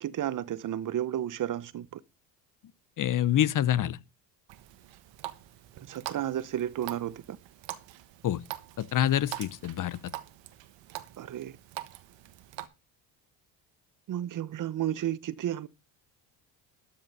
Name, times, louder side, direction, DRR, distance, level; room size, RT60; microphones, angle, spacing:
voice 1, 0.0-2.0 5.9-7.4 11.2-11.5 14.1-15.7, right 11 dB, 40° right, 0.7 m, -32 dB
voice 2, 3.0-4.0 8.2-8.4 8.8-10.0, left 11 dB, 40° left, 0.8 m, -26 dB
Water tap faucet, 4.5-12.7, right 14 dB, 65° right, 1.4 m, -44 dB
13.0 x 5.8 x 5.3 m
supercardioid pair, 75°, 47 cm